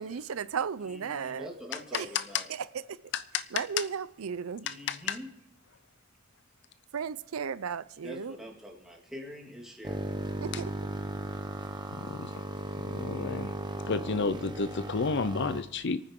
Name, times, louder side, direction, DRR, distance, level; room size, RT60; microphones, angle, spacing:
voice 1, 0.0-1.5 1.9-2.1 3.5-4.7 6.9-8.4 10.4-10.7, right 6 dB, 80° right, 0.5 m, -35 dB
voice 2, 0.8-2.5 4.6-5.3 8.0-10.0, equal, ahead, 2.4 m, -44 dB
voice 3, 1.9-2.4 3.1-3.8 4.7-5.2 12.0-12.3 12.9-13.5 13.9-16.0, left 5 dB, 55° left, 0.6 m, -31 dB
sound 1, 9.8-15.6, right 1 dB, 20° right, 1.0 m, -36 dB
25.5 x 9.5 x 3.7 m
head